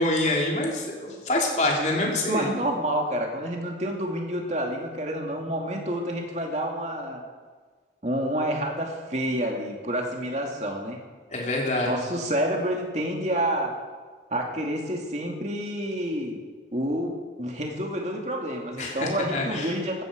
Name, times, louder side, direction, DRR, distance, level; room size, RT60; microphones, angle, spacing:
voice 1, 0.0-2.5 11.3-12.0 18.8-19.7, left 1 dB, 40° left, -1 dB, 3.2 m, -26 dB
voice 2, 2.3-7.2 8.0-11.0 11.8-13.8 14.3-16.4 16.7-20.0, right 1 dB, 40° right, 1 dB, 2.4 m, -28 dB
16.0 x 13.0 x 5.2 m, 1.5 s
head